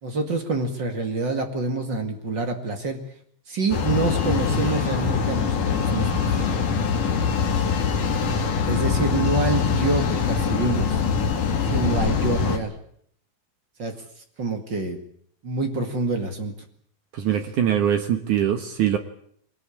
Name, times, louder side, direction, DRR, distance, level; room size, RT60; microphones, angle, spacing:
voice 1, 0.0-3.0 3.5-6.1 8.6-11.0 11.6-12.7 13.8-13.9 14.4-15.0 15.4-16.5, right 3 dB, 40° right, 5 dB, 1.6 m, -26 dB
sound 1, 3.7-12.6, left 6 dB, 50° left, 3.5 m, -23 dB
voice 2, 17.1-19.0, right 10 dB, 70° right, 7 dB, 1.9 m, -22 dB
22.5 x 19.5 x 8.7 m, 0.64 s
omnidirectional pair, 5.4 m